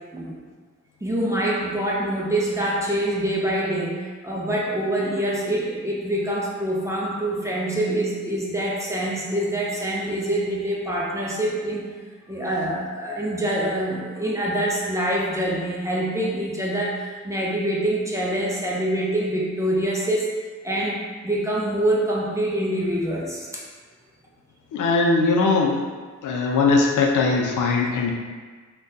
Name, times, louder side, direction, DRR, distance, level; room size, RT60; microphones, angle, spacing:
voice 1, 1.0-11.8 12.3-20.3 20.6-23.6, right 1 dB, 10° right, -5 dB, 0.4 m, -25 dB
voice 2, 24.7-25.8 26.2-28.1, left 3 dB, 90° left, 1 dB, 0.5 m, -20 dB
3.7 x 2.3 x 2.6 m, 1.5 s
wide cardioid pair, 160°, 30 cm